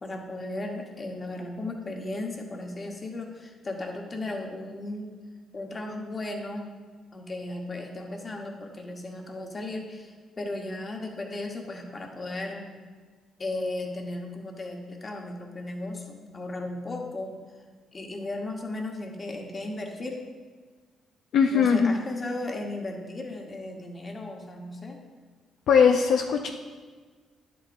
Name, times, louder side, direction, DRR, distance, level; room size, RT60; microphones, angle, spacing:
voice 1, 0.0-5.2 5.5-6.7 7.1-12.7 13.4-17.3 17.9-20.2 21.5-25.0, left 2 dB, 30° left, 2 dB, 1.2 m, -35 dB
voice 2, 21.3-22.0 25.7-26.5, left 6 dB, 70° left, 4 dB, 0.4 m, -20 dB
10.0 x 7.9 x 2.6 m, 1.5 s
cardioid pair, 110°, 0 cm